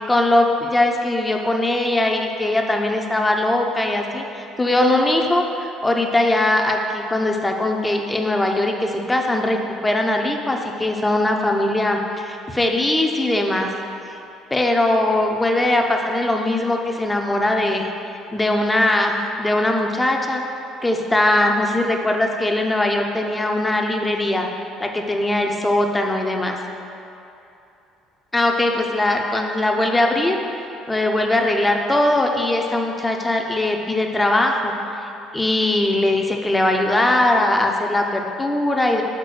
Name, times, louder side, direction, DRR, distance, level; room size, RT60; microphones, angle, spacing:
voice 1, 0.1-13.7 14.5-17.9 18.3-20.4 20.8-24.5 24.8-26.5 28.3-30.4 30.9-34.7 35.3-39.0, left 1 dB, 15° left, 2 dB, 0.9 m, -20 dB
6.7 x 4.1 x 6.3 m, 2.8 s
hypercardioid pair, 55°, 0 cm